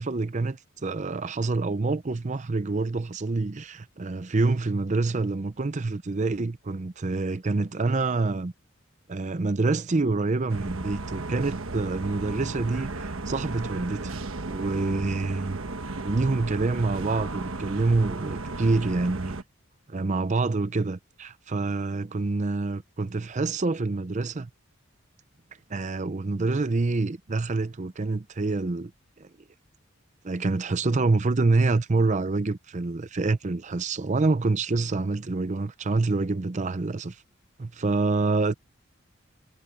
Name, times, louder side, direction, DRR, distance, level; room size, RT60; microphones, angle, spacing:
voice 1, 0.0-8.5 9.1-14.2 14.5-15.6 15.9-19.4 19.9-24.5 25.7-28.9 29.2-29.3 30.2-37.2 37.6-38.6, right 3 dB, 35° right, 0.5 m, -26 dB
sound 1, 10.5-19.4, right 3 dB, 80° right, 1.2 m, -34 dB
head